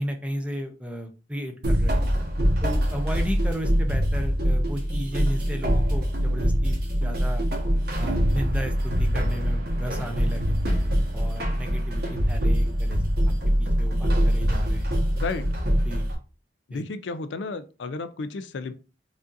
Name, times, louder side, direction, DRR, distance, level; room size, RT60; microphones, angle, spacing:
voice 1, 0.0-2.1 2.6-7.5 8.0-10.6 11.1-13.3 13.6-14.9 15.8-16.0 16.7-16.8, equal, 5° right, 4 dB, 0.6 m, -34 dB
sound 1, 1.6-16.1, equal, 65° right, 1.2 m, -24 dB
voice 2, 15.2-15.5 16.7-18.7, left 3 dB, 85° left, 11 dB, 0.4 m, -32 dB
4.9 x 2.6 x 2.5 m, 0.33 s
head